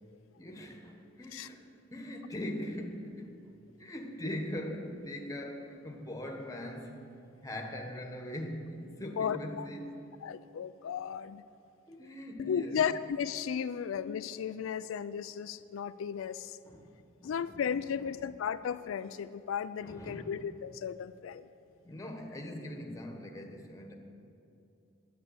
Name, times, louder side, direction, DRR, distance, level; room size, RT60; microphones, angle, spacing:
voice 1, 0.4-3.3 3.8-7.0 7.4-10.0 11.9-12.9 13.7-13.9 16.6-18.3 19.8-20.4 21.8-23.9, left 1 dB, 15° left, 3 dB, 1.2 m, -41 dB
voice 2, 9.2-9.7 10.2-11.4 12.4-16.6 17.2-21.5, left 7 dB, 85° left, 13 dB, 0.3 m, -35 dB
11.0 x 9.4 x 7.9 m, 2.7 s
head